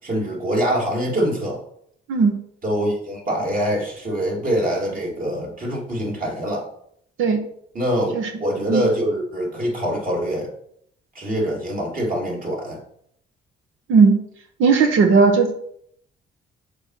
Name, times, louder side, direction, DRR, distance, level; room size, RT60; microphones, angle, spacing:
voice 1, 0.0-1.6 2.6-6.7 7.7-8.1 8.4-10.5 11.1-12.8, equal, 45° right, -2 dB, 3.1 m, -24 dB
voice 2, 14.6-15.5, right 4 dB, 85° right, 5 dB, 1.1 m, -16 dB
6.8 x 4.5 x 5.8 m, 0.69 s
cardioid pair, 90°, 20 cm